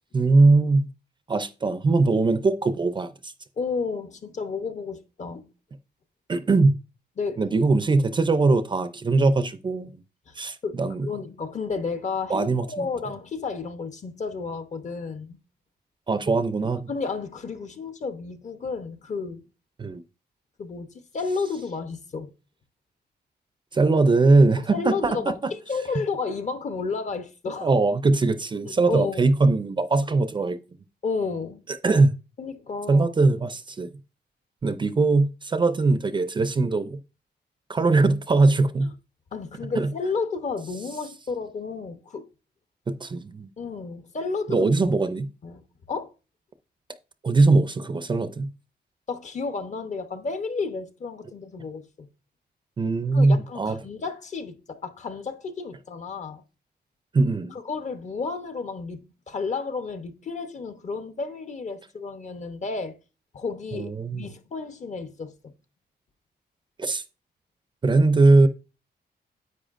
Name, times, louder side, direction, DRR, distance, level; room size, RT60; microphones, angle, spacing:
voice 1, 0.1-0.9 1.3-3.3 6.3-6.8 7.4-9.9 10.4-11.1 12.3-12.9 16.1-16.9 19.8-20.0 23.7-25.3 27.6-30.6 31.8-32.1 32.9-33.9 34.6-37.0 37.7-38.9 39.8-39.9 42.9-43.5 44.5-45.3 47.2-48.5 52.8-53.8 57.1-57.6 63.7-64.3 66.8-67.0 67.8-68.5, right 3 dB, 25° right, 0.5 m, -21 dB
voice 2, 3.6-5.5 7.2-7.4 10.3-10.4 10.6-15.4 16.9-19.4 20.6-22.3 24.6-27.7 28.9-29.2 31.0-31.6 32.4-33.2 39.3-42.3 43.6-44.7 45.4-46.1 49.1-52.1 53.1-56.4 57.5-63.0 63.3-65.5, left 4 dB, 45° left, 0.9 m, -32 dB
10.0 x 7.9 x 2.5 m
wide cardioid pair, 170°, 18 cm